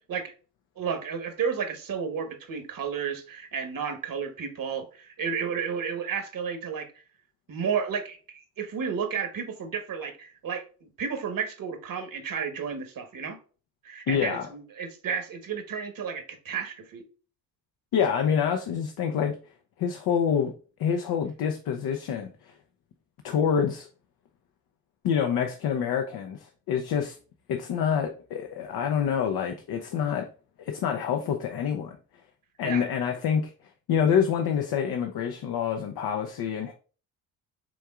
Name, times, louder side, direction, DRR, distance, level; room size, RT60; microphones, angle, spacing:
voice 1, 0.8-6.9 7.5-13.4 13.8-17.0 32.6-32.8, right 6 dB, 55° right, 1.3 m, -32 dB
voice 2, 14.1-14.5 17.9-19.4 19.8-20.5 20.8-22.5 23.2-23.9 25.0-27.2 27.5-30.3 30.6-32.0 32.6-33.5 33.9-36.7, left 7 dB, 65° left, 0.7 m, -27 dB
6.1 x 3.5 x 2.4 m
hypercardioid pair, 50°, 41 cm